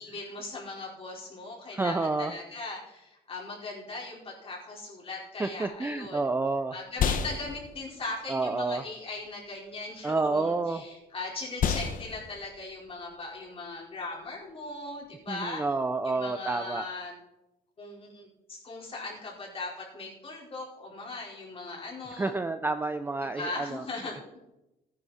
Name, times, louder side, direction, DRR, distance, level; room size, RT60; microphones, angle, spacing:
voice 1, 0.0-6.2 6.7-15.6 16.0-17.1 17.8-22.3 23.2-24.4, left 3 dB, 35° left, -3 dB, 4.6 m, -39 dB
voice 2, 1.7-2.3 5.4-6.7 8.3-8.8 10.0-10.8 15.3-16.9 22.1-23.8, right 3 dB, 10° right, 9 dB, 0.5 m, -29 dB
sound 1, 5.6-15.2, left 7 dB, 55° left, 1.1 m, -35 dB
13.5 x 10.5 x 4.3 m, 0.95 s
cardioid pair, 110°, 17 cm